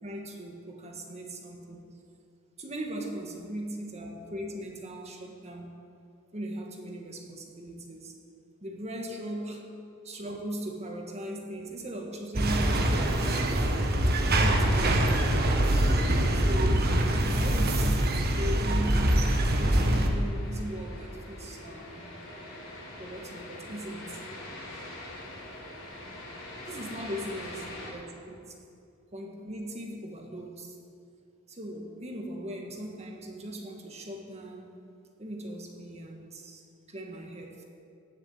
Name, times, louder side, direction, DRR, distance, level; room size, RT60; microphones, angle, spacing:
voice 1, 0.0-1.8 2.6-5.8 6.3-8.1 8.6-9.7 10.0-13.4 13.9-15.0 16.3-19.3 19.6-22.1 23.0-24.2 26.7-28.6 29.1-30.8 31.5-34.7 35.2-37.6, right 1 dB, 30° right, 2 dB, 1.8 m, -38 dB
sound 1, 12.3-20.1, right 1 dB, 50° right, 1.3 m, -24 dB
sound 2, 14.7-27.9, left 1 dB, 65° left, 4.3 m, -45 dB
18.5 x 7.2 x 7.4 m, 2.4 s
head